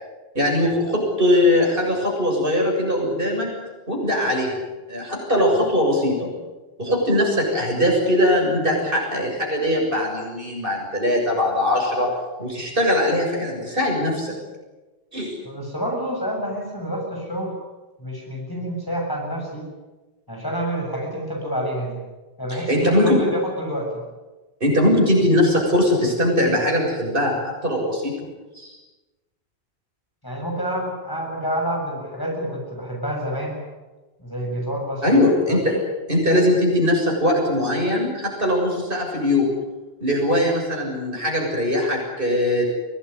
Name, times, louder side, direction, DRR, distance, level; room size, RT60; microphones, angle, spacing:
voice 1, 0.3-3.5 3.9-4.5 4.9-6.3 6.8-12.1 12.4-14.3 15.1-15.3 22.5-23.2 24.6-28.3 28.6-28.7 35.0-35.7 36.1-39.5 40.0-42.6, left 1 dB, 55° right, 0 dB, 7.5 m, -21 dB
voice 2, 15.4-17.5 18.0-19.7 20.3-22.0 22.4-24.0 30.2-33.7 34.2-35.2 35.5-35.6, equal, 20° left, -1 dB, 7.3 m, -28 dB
23.5 x 18.5 x 9.8 m, 1.2 s
omnidirectional pair, 1.1 m